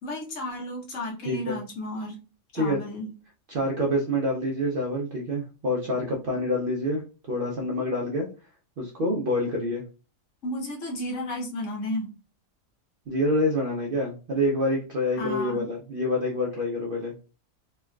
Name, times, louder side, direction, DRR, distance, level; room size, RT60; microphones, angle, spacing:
voice 1, 0.0-2.2 2.5-3.1 10.4-12.1 15.2-15.7, left 1 dB, 60° left, -2 dB, 1.2 m, -33 dB
voice 2, 1.3-1.6 2.5-2.8 3.5-7.0 7.3-8.3 8.8-9.8 13.1-17.1, left 1 dB, 60° right, -2 dB, 0.5 m, -27 dB
3.3 x 2.2 x 2.3 m, 0.34 s
omnidirectional pair, 1.5 m